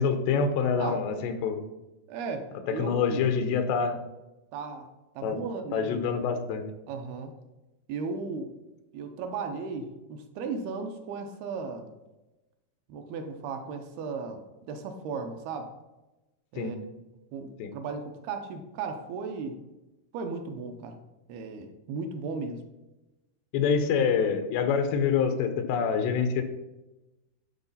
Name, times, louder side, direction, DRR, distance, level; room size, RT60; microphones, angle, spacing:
voice 1, 0.0-1.6 2.7-4.0 5.2-5.4 5.7-6.6 16.6-16.8 17.6-17.7 23.5-26.4, left 6 dB, 90° left, 8 dB, 3.0 m, -26 dB
voice 2, 2.1-3.3 4.5-4.9 5.2-6.0 6.9-7.3 7.9-8.5 8.9-11.9 12.9-14.4 14.7-15.7 16.5-16.8 17.3-19.6 20.1-21.0 21.3-22.6, right 4 dB, 80° right, 5 dB, 2.6 m, -36 dB
11.5 x 4.0 x 5.5 m, 1.0 s
omnidirectional pair, 4.7 m